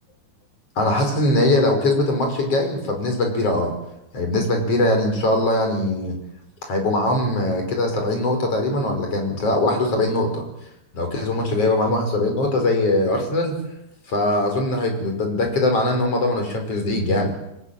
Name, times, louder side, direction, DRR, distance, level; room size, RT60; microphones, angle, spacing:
voice 1, 0.8-3.7 4.1-6.2 6.6-10.4 10.9-13.6 14.1-17.4, left 1 dB, 35° left, 4 dB, 6.1 m, -21 dB
25.0 x 20.5 x 9.1 m, 0.86 s
omnidirectional pair, 5.0 m